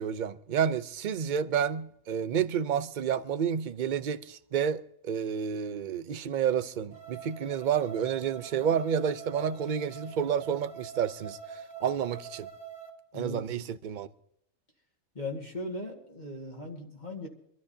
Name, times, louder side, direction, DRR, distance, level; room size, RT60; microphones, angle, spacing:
voice 1, 0.0-11.4 11.8-12.5 13.1-14.1, right 8 dB, 50° right, 0.6 m, -30 dB
sound 1, 6.9-12.9, right 6 dB, 25° right, 2.5 m, -44 dB
voice 2, 13.1-13.4 15.1-17.3, left 2 dB, 35° left, 1.9 m, -38 dB
25.5 x 13.0 x 2.7 m
omnidirectional pair, 1.3 m